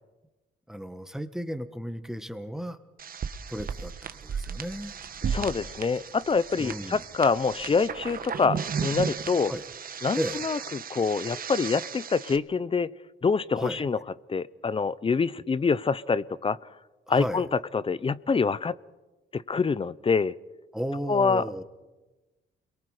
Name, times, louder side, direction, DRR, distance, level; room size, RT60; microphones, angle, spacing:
voice 1, 0.7-2.8 3.5-3.9 4.2-5.0 6.6-7.0 9.5-9.7 10.2-10.4 13.6-13.8 17.1-17.4 20.7-21.6, equal, ahead, 9 dB, 1.5 m, -34 dB
sound 1, 3.0-12.4, right 6 dB, 45° right, 1.3 m, -35 dB
voice 2, 5.2-9.5 10.0-12.9 13.2-14.0 14.3-16.6 17.1-17.5 17.7-18.7 19.3-20.3 21.1-21.4, left 5 dB, 25° left, 19 dB, 0.6 m, -26 dB
29.0 x 22.5 x 5.0 m, 1.2 s
cardioid pair, 90°, 20 cm